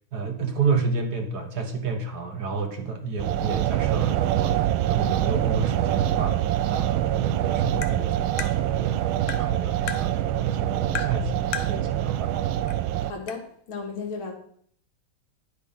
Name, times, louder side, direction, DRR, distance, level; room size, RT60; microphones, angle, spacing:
voice 1, 0.1-6.4 6.7-9.0 9.4-12.3, right 4 dB, 60° right, 1.3 m, -30 dB
sound 1, 3.2-13.1, right 12 dB, 80° right, 1.3 m, -25 dB
Tap, 7.8-8.0 8.4-8.5 9.3-9.4 9.9-10.0 11.0-11.1 11.5-11.7 12.7-12.8 13.3-13.4, left 7 dB, 60° left, 0.8 m, -32 dB
voice 2, 13.1-14.3, left 4 dB, 80° left, 2.4 m, -34 dB
10.0 x 5.0 x 5.4 m
omnidirectional pair, 2.2 m